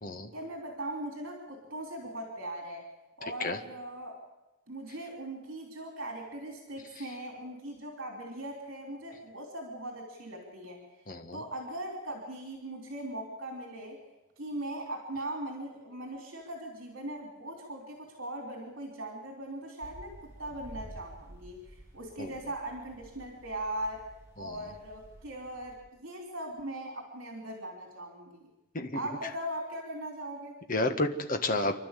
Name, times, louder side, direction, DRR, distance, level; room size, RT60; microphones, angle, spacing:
voice 1, 0.3-2.9 3.2-4.2 4.7-11.1 11.3-14.0 14.4-24.1 24.4-28.5 28.9-30.6, right 1 dB, 60° right, 1 dB, 3.3 m, -40 dB
voice 2, 11.1-11.4 22.2-22.3 24.4-24.5 28.7-29.0 30.7-31.7, left 2 dB, 40° left, 6 dB, 1.6 m, -31 dB
sound 1, 19.8-25.8, right 1 dB, 15° right, 6.1 m, -51 dB
28.5 x 12.0 x 8.4 m, 1.0 s
head